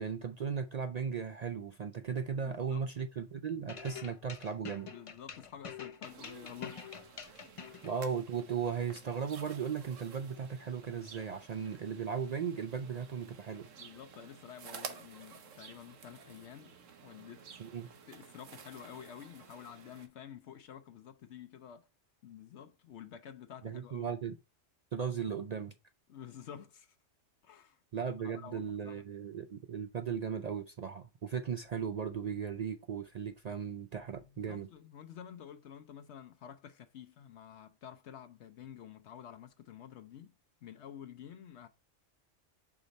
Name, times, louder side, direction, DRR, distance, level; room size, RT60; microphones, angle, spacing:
voice 1, 0.0-4.9 7.8-13.7 17.6-17.9 23.6-24.4 24.9-25.7 27.9-34.7, right 7 dB, 70° right, 0.3 m, -37 dB
voice 2, 2.4-2.8 4.9-7.2 13.8-16.8 17.0-21.9 22.2-24.1 26.1-27.0 27.4-27.8 28.2-29.0 34.3-40.3 40.6-41.7, left 9 dB, 70° left, 0.8 m, -50 dB
sound 1, 3.7-7.9, left 7 dB, 50° left, 0.4 m, -46 dB
sound 2, 6.0-20.1, right 6 dB, 85° right, 1.3 m, -52 dB
4.9 x 4.1 x 5.1 m
omnidirectional pair, 1.3 m